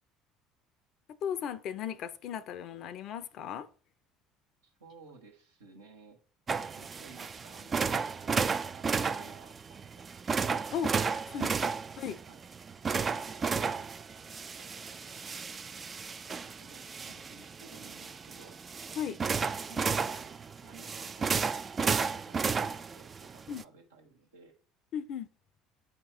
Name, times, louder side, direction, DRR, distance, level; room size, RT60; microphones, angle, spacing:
voice 1, 1.2-3.7 10.7-11.0 11.3-11.5 12.0-12.2 19.0-19.2 23.5-23.6 24.9-25.3, left 8 dB, 55° left, 0.4 m, -36 dB
voice 2, 4.6-6.2 6.7-10.1 12.3-12.4 13.1-13.9 14.6-15.5 16.4-18.6 19.7-21.6 22.1-24.6, right 4 dB, 80° right, 1.1 m, -56 dB
sound 1, 6.5-23.6, right 5 dB, 30° right, 0.3 m, -33 dB
7.8 x 2.9 x 4.5 m
figure-of-eight pair, 60°, 0 cm